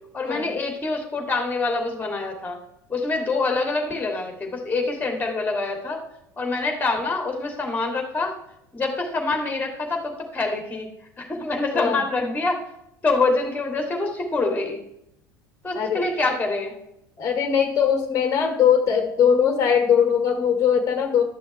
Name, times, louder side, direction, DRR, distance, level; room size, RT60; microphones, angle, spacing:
voice 1, 0.1-2.6 2.9-6.0 6.4-8.4 8.7-10.9 11.2-12.6 13.0-14.8 15.6-16.8, left 3 dB, 15° left, 2 dB, 2.7 m, -25 dB
voice 2, 15.7-16.1 17.2-21.2, left 7 dB, 35° left, 6 dB, 1.5 m, -20 dB
12.0 x 6.3 x 3.3 m, 0.77 s
figure-of-eight pair, 75°, 10 cm